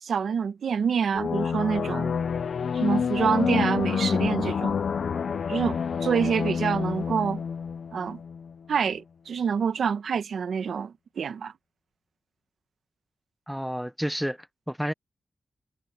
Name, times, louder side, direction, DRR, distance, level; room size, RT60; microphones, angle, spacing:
voice 1, 0.0-2.1 2.7-4.8 5.5-7.4 7.9-8.2 8.7-11.5, right 6 dB, 80° right, 1.0 m, -27 dB
sound 1, 1.1-8.5, left 6 dB, 65° left, 0.6 m, -28 dB
voice 2, 13.5-14.9, equal, ahead, 0.6 m, -30 dB
wide cardioid pair, 170°, 0 cm